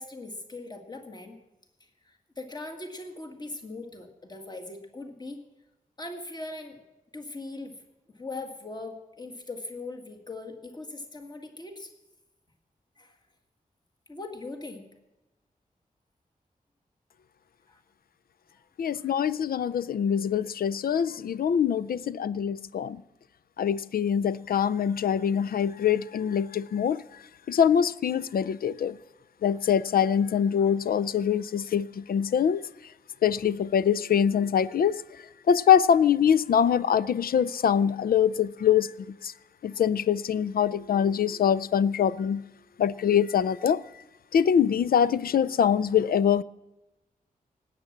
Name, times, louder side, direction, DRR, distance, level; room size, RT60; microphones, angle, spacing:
voice 1, 0.0-1.4 1.8-5.4 6.0-6.8 7.1-7.8 8.1-11.9 13.0-13.2 14.1-14.9 17.7-17.8 18.9-19.1, left 2 dB, 30° left, 1.8 m, -40 dB
voice 2, 18.8-23.0 23.6-27.0 27.5-29.0 29.4-32.6 33.2-35.0 35.5-38.9 39.2-39.3 39.6-42.4 42.8-43.8 44.3-46.4, left 8 dB, 85° left, 0.4 m, -24 dB
18.5 x 8.7 x 7.3 m
wide cardioid pair, 155°, 15 cm